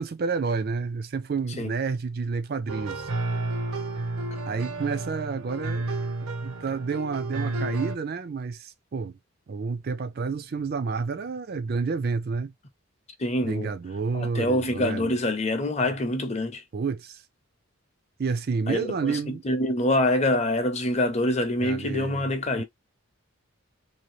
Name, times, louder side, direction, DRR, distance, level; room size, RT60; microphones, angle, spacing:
voice 1, 0.0-3.1 4.5-5.9 6.4-9.2 9.5-12.5 13.4-15.1 15.8-15.9 16.7-17.2 18.2-19.4 21.6-22.3 22.6-22.7, right 4 dB, 45° right, 0.4 m, -30 dB
sound 1, 2.7-8.0, right 2 dB, 80° right, 0.8 m, -31 dB
voice 2, 13.2-13.7 14.1-16.6 18.7-19.2 19.4-22.6, left 1 dB, 30° left, 0.7 m, -25 dB
2.8 x 2.7 x 3.0 m
head